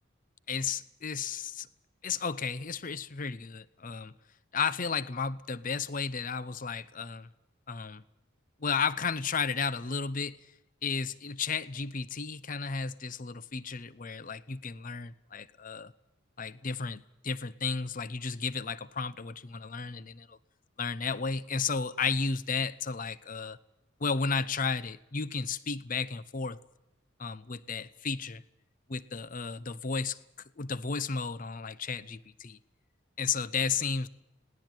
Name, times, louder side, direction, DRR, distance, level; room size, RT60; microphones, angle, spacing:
voice 1, 0.5-1.7 2.0-4.1 4.5-7.3 7.7-8.0 8.6-10.4 10.8-15.9 16.4-20.4 20.8-23.6 24.0-26.6 27.2-28.4 28.9-30.2 30.6-32.6 33.2-34.1, left 5 dB, 40° left, 0.7 m, -33 dB
20.5 x 18.0 x 9.2 m
head